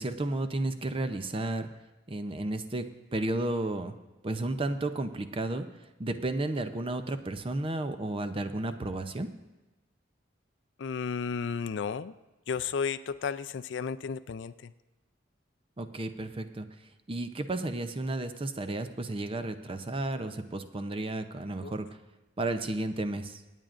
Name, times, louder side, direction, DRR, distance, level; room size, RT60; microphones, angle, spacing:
voice 1, 0.0-1.7 2.1-3.9 4.2-5.7 6.0-9.3 15.8-16.7 17.1-21.9 22.4-23.4, right 2 dB, 30° right, 9 dB, 0.6 m, -32 dB
voice 2, 10.8-12.1 12.5-14.5 21.6-21.7, left 6 dB, 70° left, 13 dB, 0.4 m, -33 dB
24.5 x 9.1 x 2.5 m, 1.1 s
head